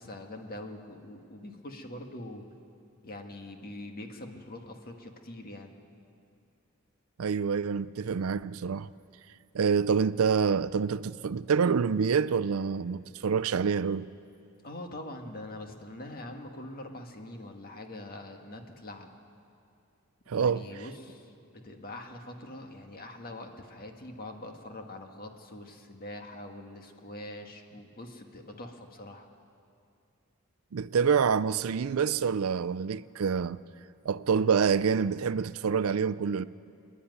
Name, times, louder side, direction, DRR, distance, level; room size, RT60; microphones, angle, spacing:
voice 1, 0.0-2.5 3.0-5.8 14.6-19.1 20.3-29.3, left 1 dB, 45° left, 1.6 m, -43 dB
voice 2, 7.2-8.9 9.5-14.1 20.3-20.7 30.7-33.6 34.0-36.4, right 6 dB, 75° right, 0.4 m, -27 dB
27.0 x 10.0 x 9.4 m
head